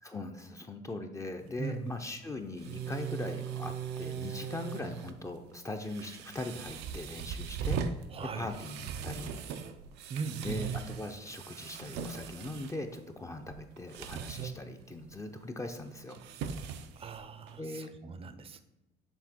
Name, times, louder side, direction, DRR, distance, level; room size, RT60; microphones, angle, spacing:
voice 1, 0.0-7.8 8.2-9.4 10.4-16.2 17.6-17.9, left 2 dB, 20° left, 5 dB, 0.5 m, -40 dB
sound 1, 1.4-17.6, right 7 dB, 85° right, 0.5 m, -40 dB
voice 2, 1.6-2.0 8.1-8.5 10.1-10.7 17.0-18.6, right 5 dB, 35° right, 12 dB, 0.5 m, -39 dB
7.2 x 3.4 x 4.4 m, 0.97 s
cardioid pair, 110°, 17 cm